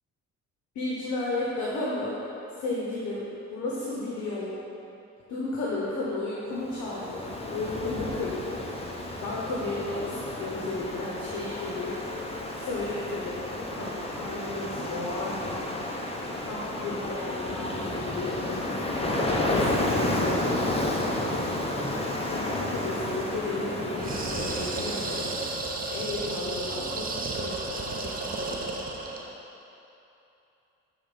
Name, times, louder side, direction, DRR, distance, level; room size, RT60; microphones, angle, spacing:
voice 1, 0.7-2.2 2.6-4.6 5.3-8.7 8.9-12.1 12.5-15.7 16.4-18.8 19.5-21.7 22.3-25.4 25.9-28.8, left 2 dB, 75° left, -5 dB, 1.1 m, -34 dB
Ocean, 6.6-25.7, left 1 dB, 20° left, 0.7 m, -31 dB
sound 1, 24.0-29.3, right 3 dB, 30° right, 0.7 m, -33 dB
7.0 x 3.7 x 5.0 m, 2.9 s
cardioid pair, 90°, 30 cm